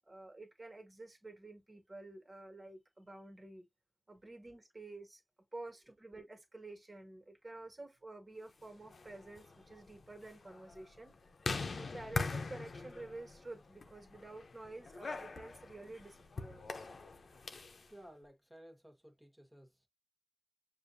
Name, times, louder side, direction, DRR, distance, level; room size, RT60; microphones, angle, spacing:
voice 1, 0.1-3.7 4.1-5.2 5.5-11.1 11.8-16.9, right 2 dB, 30° right, 1.7 m, -50 dB
sound 1, 8.8-17.9, left 4 dB, 75° left, 0.7 m, -43 dB
voice 2, 17.9-19.9, equal, 10° right, 1.4 m, -57 dB
6.8 x 2.7 x 2.6 m
wide cardioid pair, 105°, 0 cm